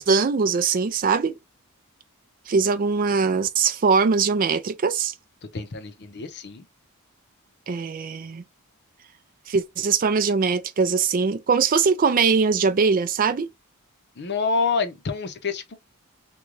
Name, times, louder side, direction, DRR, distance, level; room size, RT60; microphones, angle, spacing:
voice 1, 0.0-1.3 2.5-5.1 7.7-8.4 9.5-13.5, right 5 dB, 40° right, 0.4 m, -21 dB
voice 2, 5.4-6.7 14.2-15.8, left 4 dB, 50° left, 0.6 m, -27 dB
3.7 x 2.3 x 3.1 m
head